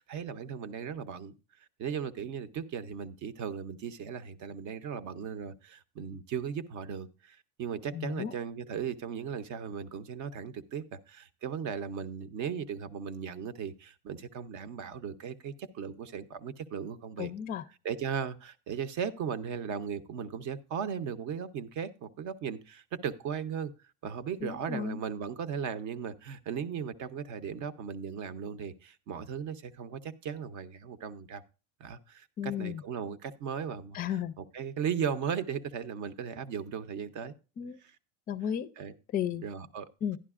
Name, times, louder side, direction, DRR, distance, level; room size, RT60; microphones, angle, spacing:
voice 1, 0.0-1.3 1.8-17.3 17.8-23.7 24.0-31.4 31.8-34.0 34.4-37.3 37.8-38.0 38.8-38.9 39.4-39.9, right 7 dB, 50° right, 0.7 m, -37 dB
voice 2, 7.9-8.4 17.2-17.6 24.4-25.0 32.4-32.8 33.9-34.3 37.6-37.8 38.3-38.7 39.1-39.4 40.0-40.2, left 9 dB, 25° left, 0.4 m, -33 dB
11.0 x 10.5 x 2.4 m
supercardioid pair, 120°, 37 cm